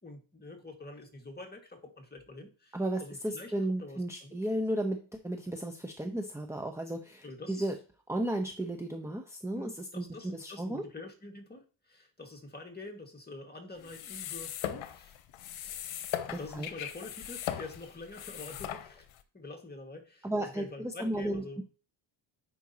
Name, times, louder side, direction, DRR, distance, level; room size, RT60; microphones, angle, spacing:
voice 1, 0.0-4.4 7.2-7.7 9.5-15.1 15.6-19.1 19.3-21.6, left 2 dB, 20° left, 2 dB, 2.1 m, -46 dB
voice 2, 2.7-7.8 8.1-10.8 16.3-16.7 20.2-21.6, right 1 dB, 5° right, 3 dB, 1.0 m, -34 dB
sound 1, 13.8-19.2, left 11 dB, 70° left, 1.0 m, -39 dB
9.0 x 5.5 x 3.0 m, 0.38 s
supercardioid pair, 65°, 49 cm